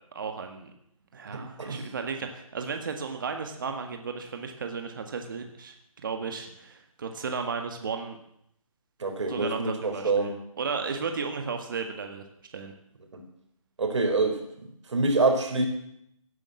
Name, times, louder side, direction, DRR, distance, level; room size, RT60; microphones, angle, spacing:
voice 1, 0.1-0.7 1.1-8.2 9.3-12.3 12.5-12.7, right 5 dB, 35° right, 5 dB, 1.7 m, -34 dB
voice 2, 1.3-1.8 9.0-10.3 13.1-13.2 13.8-14.4 14.9-15.7, right 3 dB, 55° right, 5 dB, 4.0 m, -26 dB
16.5 x 10.5 x 7.7 m, 0.74 s
hypercardioid pair, 170°, 18 cm